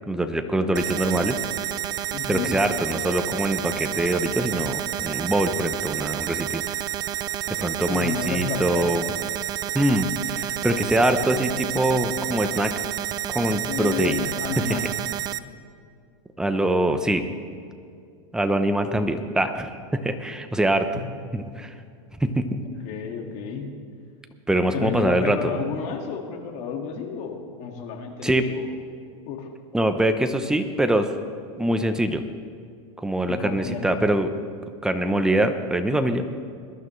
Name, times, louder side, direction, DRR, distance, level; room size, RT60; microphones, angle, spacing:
voice 1, 0.1-1.4 2.3-6.6 7.6-9.1 9.7-12.7 13.3-14.3 14.6-14.8 16.4-17.2 18.3-20.9 21.3-21.7 22.2-22.6 24.5-25.5 28.2-28.4 29.7-31.1 31.6-32.2 33.0-34.3 34.8-36.3, right 1 dB, 5° right, 7 dB, 0.7 m, -23 dB
sound 1, 0.8-15.4, right 11 dB, 25° right, 0.3 m, -30 dB
voice 2, 2.1-2.6 7.9-9.0 13.5-14.9 20.9-21.0 22.6-23.7 24.7-28.7 29.3-29.5 33.3-33.9, left 6 dB, 45° left, 3 dB, 2.0 m, -31 dB
21.5 x 11.5 x 3.2 m, 2.3 s
supercardioid pair, 145°, 16 cm